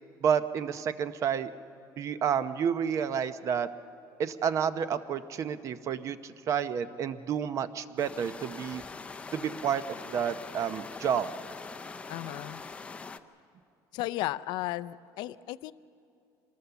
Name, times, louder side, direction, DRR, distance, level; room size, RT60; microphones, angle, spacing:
voice 1, 0.2-1.5 2.0-3.7 4.2-8.8 9.3-11.3, right 8 dB, 40° right, 12 dB, 0.7 m, -30 dB
sound 1, 8.0-13.2, left 4 dB, 15° left, 0.6 m, -43 dB
voice 2, 12.1-12.6 13.9-15.7, left 16 dB, 65° left, 16 dB, 0.5 m, -34 dB
25.5 x 20.0 x 7.0 m, 2.5 s
cardioid pair, 155°, 8 cm